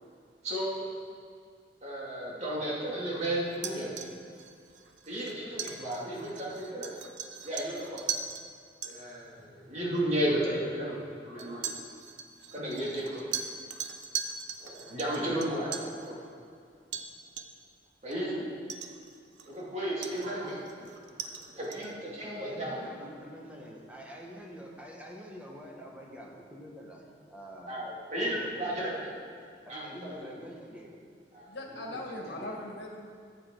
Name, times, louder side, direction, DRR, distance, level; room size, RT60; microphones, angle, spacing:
voice 1, 0.4-0.8 1.8-4.0 5.0-6.9 7.4-8.0 8.9-11.8 12.5-13.2 14.6-16.2 18.0-18.4 19.4-20.9 21.4-22.8 27.7-29.1 29.7-30.1 31.3-31.6, right 1 dB, 40° right, -6 dB, 2.6 m, -33 dB
sound 1, 3.5-8.4 8.8-8.9 10.0-10.1 11.4-16.0 16.9-17.1 17.4-17.7 18.1-18.2 18.7-19.6 20.0-21.9, right 7 dB, 90° right, 0.8 m, -39 dB
voice 2, 22.2-27.0 27.3-27.8 28.2-28.8 29.6-31.0 32.2-32.6, equal, 10° right, -2 dB, 1.4 m, -46 dB
voice 3, 31.5-33.0, left 1 dB, 85° left, 0 dB, 1.7 m, -39 dB
14.5 x 8.7 x 3.9 m, 2.3 s
head